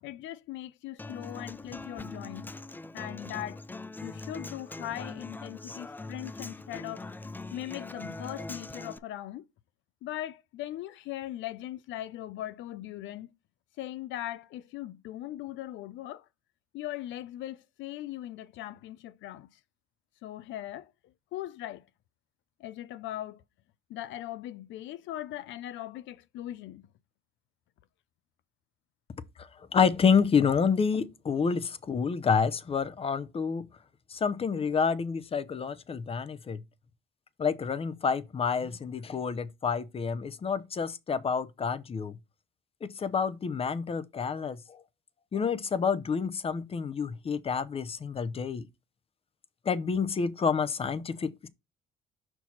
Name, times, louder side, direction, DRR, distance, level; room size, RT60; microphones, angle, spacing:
voice 1, 0.0-2.5 2.9-3.6 4.0-7.1 7.5-9.5 10.0-13.3 13.8-16.3 16.7-19.6 20.2-20.9 21.3-21.9 22.6-23.4 23.9-26.9, left 13 dB, 75° left, 0.6 m, -39 dB
Human voice / Acoustic guitar, 1.0-9.0, left 2 dB, 10° left, 0.4 m, -42 dB
voice 2, 29.4-33.7 34.1-36.6 37.4-42.2 42.8-44.8 45.3-48.7 49.6-51.5, left 6 dB, 30° left, 0.7 m, -28 dB
5.8 x 4.6 x 4.1 m
cardioid pair, 110°, 19 cm